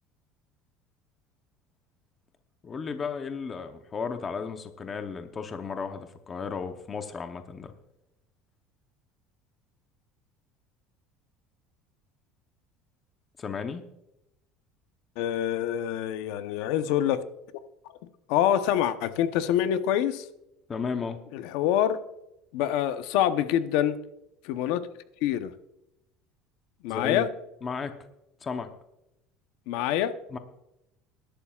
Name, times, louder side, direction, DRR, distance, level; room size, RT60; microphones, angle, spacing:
voice 1, 2.6-7.7 13.4-13.8 20.7-21.2 26.9-27.3 27.6-28.0 28.4-28.7 30.3-30.4, left 5 dB, 25° left, 7 dB, 0.8 m, -34 dB
voice 2, 15.2-17.2 18.3-20.3 21.3-22.0 22.5-24.0 24.4-24.8 25.2-25.5 26.8-27.3 29.7-30.1, left 11 dB, 70° left, 10 dB, 0.8 m, -25 dB
21.0 x 11.5 x 2.4 m, 0.87 s
cardioid pair, 160°, 0 cm